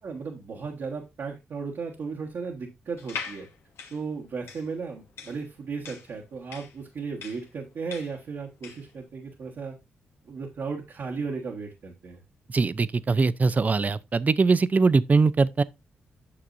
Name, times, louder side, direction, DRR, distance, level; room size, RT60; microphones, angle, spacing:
voice 1, 0.0-3.5 3.9-9.8 10.2-12.2, right 5 dB, 65° right, 1.4 m, -35 dB
sound 1, 3.0-8.9, left 6 dB, 75° left, 1.3 m, -41 dB
voice 2, 12.5-15.6, right 4 dB, 35° right, 0.5 m, -22 dB
8.6 x 6.0 x 2.6 m
supercardioid pair, 55°, 4 cm